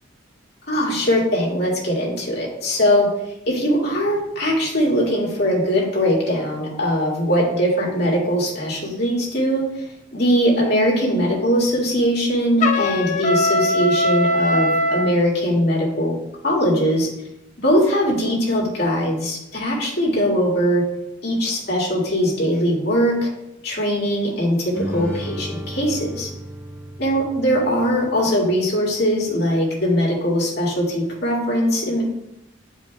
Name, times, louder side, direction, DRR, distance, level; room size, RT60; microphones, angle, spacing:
voice 1, 0.7-3.1 3.5-9.9 10.1-16.2 16.4-17.1 17.6-20.8 21.2-23.3 23.6-26.3 27.0-32.0, equal, 55° left, -3 dB, 2.1 m, -21 dB
Trumpet, 12.6-15.1, left 1 dB, 40° left, 0.7 m, -20 dB
sound 1, 24.7-28.4, equal, 15° right, 1.8 m, -33 dB
10.5 x 4.8 x 2.3 m, 0.86 s
head